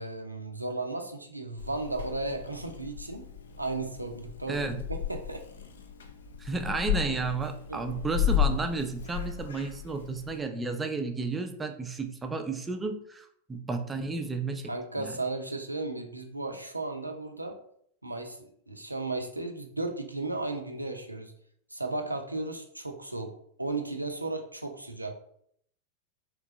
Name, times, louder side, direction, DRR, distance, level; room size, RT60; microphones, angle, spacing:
voice 1, 0.0-3.3 3.6-5.4 7.7-7.8 14.7-17.6 18.0-21.3 21.7-25.1, right 2 dB, 85° right, 4 dB, 0.5 m, -35 dB
Purr / Meow, 1.6-10.4, left 9 dB, 65° left, 0.5 m, -34 dB
voice 2, 4.5-4.8 6.4-14.7 15.0-15.1, right 3 dB, 15° right, 6 dB, 0.5 m, -32 dB
3.5 x 3.0 x 3.6 m, 0.67 s
figure-of-eight pair, 90°, 0 cm